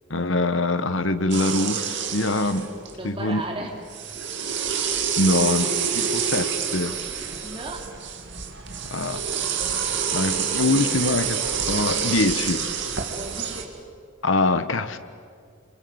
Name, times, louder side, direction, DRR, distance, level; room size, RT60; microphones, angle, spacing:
voice 1, 0.1-2.7 3.0-3.4 5.2-7.0 8.9-9.4 10.1-12.6 14.2-15.0, left 2 dB, 70° left, 11 dB, 1.3 m, -24 dB
sound 1, 1.3-3.1 3.9-13.6, right 7 dB, 60° right, 2.7 m, -27 dB
voice 2, 2.9-3.8 5.9-6.1 7.4-7.9 13.1-13.7, right 2 dB, 25° right, 0 dB, 3.2 m, -35 dB
27.0 x 26.0 x 8.1 m, 2.1 s
head